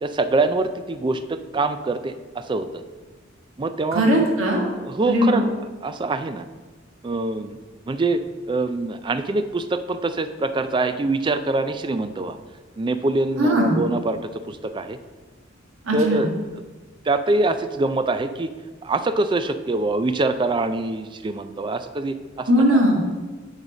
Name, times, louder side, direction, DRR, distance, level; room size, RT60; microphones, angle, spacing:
voice 1, 0.0-2.8 3.6-4.3 4.8-5.4 5.8-6.5 7.0-7.6 7.9-12.4 12.8-15.0 15.9-16.5 17.0-18.5 18.8-22.5, right 2 dB, 25° right, 10 dB, 0.4 m, -24 dB
voice 2, 3.9-4.6 5.1-5.4 13.4-13.8 15.8-16.3 22.5-22.9, equal, 80° right, -1 dB, 1.6 m, -19 dB
7.0 x 4.1 x 6.2 m, 1.3 s
head